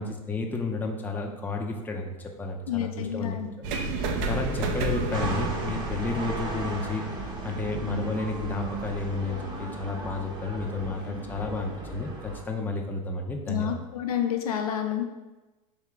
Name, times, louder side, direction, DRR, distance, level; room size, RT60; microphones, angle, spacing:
voice 1, 0.0-3.7 4.2-7.0 7.4-13.8, left 3 dB, 10° left, 1 dB, 0.5 m, -32 dB
voice 2, 2.7-3.5 13.5-15.0, left 10 dB, 90° left, 5 dB, 0.6 m, -29 dB
sound 1, 3.6-9.6, right 3 dB, 55° right, 0.6 m, -32 dB
sound 2, 5.1-12.4, right 2 dB, 25° right, 0.9 m, -36 dB
3.6 x 2.9 x 4.4 m, 1.1 s
hypercardioid pair, 120°, 18 cm